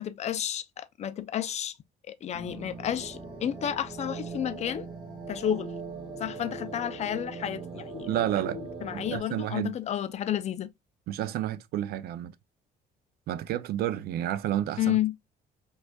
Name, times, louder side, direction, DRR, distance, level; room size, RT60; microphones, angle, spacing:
voice 1, 0.0-1.7 2.1-4.9 5.3-5.7 6.2-8.1 8.4-10.7 14.8-15.1, left 10 dB, 40° left, 0.4 m, -31 dB
sound 1, 2.3-9.2, right 4 dB, 30° right, 1.8 m, -40 dB
voice 2, 8.1-8.6 8.9-9.7 11.1-12.3 13.3-15.0, right 12 dB, 65° right, 0.4 m, -30 dB
4.9 x 2.4 x 2.2 m
cardioid pair, 110°, 17 cm